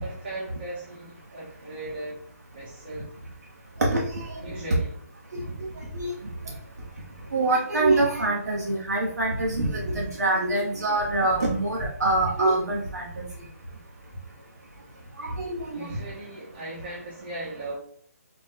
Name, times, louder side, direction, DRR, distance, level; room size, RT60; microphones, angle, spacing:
voice 1, 0.0-2.2 2.5-3.1 4.4-4.9 15.7-17.8, right 2 dB, 40° right, -4 dB, 0.7 m, -37 dB
voice 2, 3.8-4.4 5.9-6.1 7.3-13.1 15.2-15.8, right 2 dB, 80° right, -2 dB, 0.8 m, -25 dB
4.3 x 2.0 x 3.6 m, 0.63 s
hypercardioid pair, 170°, 9 cm